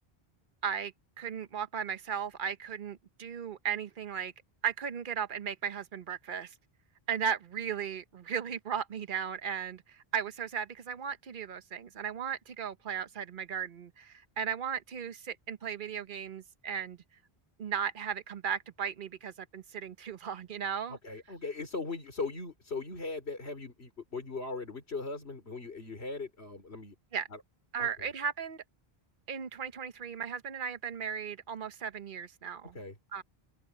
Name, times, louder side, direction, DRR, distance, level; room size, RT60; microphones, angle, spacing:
voice 1, 0.6-4.3 4.6-6.5 7.1-17.0 17.6-21.0 27.1-27.3 27.7-28.6 29.3-32.8 33.1-33.2, right 7 dB, 55° right, 1.0 m, -36 dB
voice 2, 20.9-26.9 27.3-27.4 27.8-27.9 32.7-33.0, left 3 dB, 90° left, 4.0 m, -39 dB
omnidirectional pair, 1.1 m